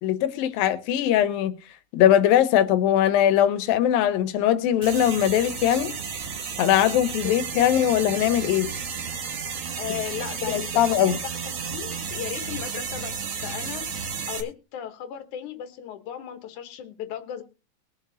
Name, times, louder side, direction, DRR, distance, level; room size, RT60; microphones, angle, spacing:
voice 1, 0.0-1.5 1.9-5.9 6.6-8.7 10.5-11.2, left 11 dB, 80° left, 2.6 m, -21 dB
sound 1, 4.8-14.4, right 6 dB, 55° right, 2.1 m, -33 dB
voice 2, 7.2-7.7 9.8-11.2 11.6-13.8 14.3-17.4, left 10 dB, 65° left, 2.4 m, -36 dB
21.0 x 7.2 x 2.8 m
omnidirectional pair, 4.2 m